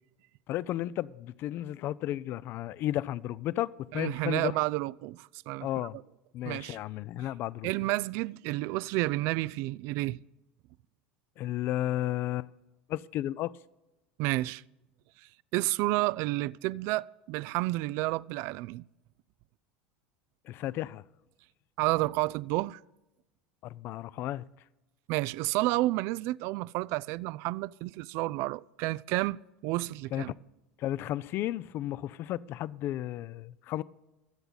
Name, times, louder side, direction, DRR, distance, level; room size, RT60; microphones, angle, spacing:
voice 1, 0.5-3.7 3.9-4.5 5.6-6.0 6.3-7.7 11.4-12.5 12.9-13.5 20.5-21.0 23.6-24.4 30.1-30.2 30.8-33.8, left 14 dB, 50° left, 0.5 m, -33 dB
voice 2, 3.9-5.9 6.4-6.8 7.6-10.2 14.2-14.6 15.5-18.8 21.8-22.8 25.1-30.3, right 19 dB, 55° right, 0.3 m, -30 dB
23.5 x 8.0 x 4.0 m
hypercardioid pair, 80°, 5 cm